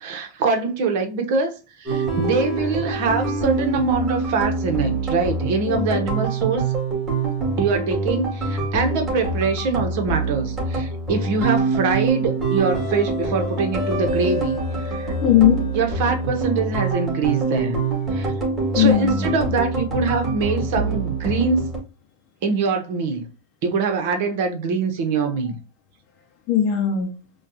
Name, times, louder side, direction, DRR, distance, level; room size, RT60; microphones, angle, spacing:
voice 1, 0.0-1.5 1.8-6.6 7.6-14.6 14.8-15.1 15.7-17.8 18.1-18.3 18.7-21.7 22.4-23.3 23.6-25.6, right 4 dB, 60° right, 1.0 m, -23 dB
sound 1, 1.9-21.8, right 3 dB, 15° right, 2.0 m, -25 dB
voice 2, 5.7-6.1 15.2-15.7 18.7-19.3 26.5-27.2, left 10 dB, 40° left, 0.6 m, -19 dB
5.0 x 2.3 x 2.7 m
supercardioid pair, 130°, 0 cm